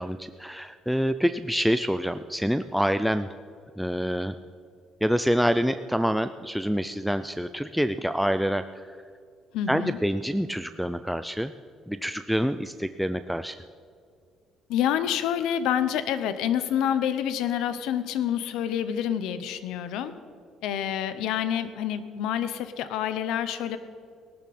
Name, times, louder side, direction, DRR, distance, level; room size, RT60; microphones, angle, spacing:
voice 1, 0.0-3.3 3.8-4.3 5.0-9.0 9.7-11.5 11.9-13.6, equal, ahead, 9 dB, 0.4 m, -26 dB
voice 2, 9.5-10.0 14.7-20.1 20.6-23.8, left 10 dB, 80° left, 11 dB, 0.9 m, -27 dB
19.0 x 12.0 x 4.3 m, 2.3 s
cardioid pair, 140°, 0 cm